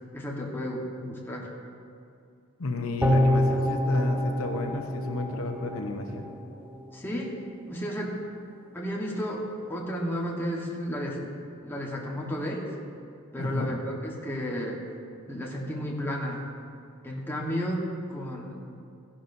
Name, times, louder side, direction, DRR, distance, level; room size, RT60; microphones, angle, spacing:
voice 1, 0.1-1.5 6.9-7.3 7.7-8.2 8.7-9.4 9.7-11.2 11.6-12.7 13.3-14.8 15.3-16.4 17.0-17.8 18.1-18.6, equal, 10° left, -3 dB, 1.3 m, -32 dB
voice 2, 2.6-6.3 13.4-13.7, left 2 dB, 80° left, 3 dB, 0.9 m, -32 dB
sound 1, 3.0-6.3 6.7-6.8, left 1 dB, 10° right, 0.9 m, -26 dB
14.5 x 11.0 x 2.7 m, 2.5 s
head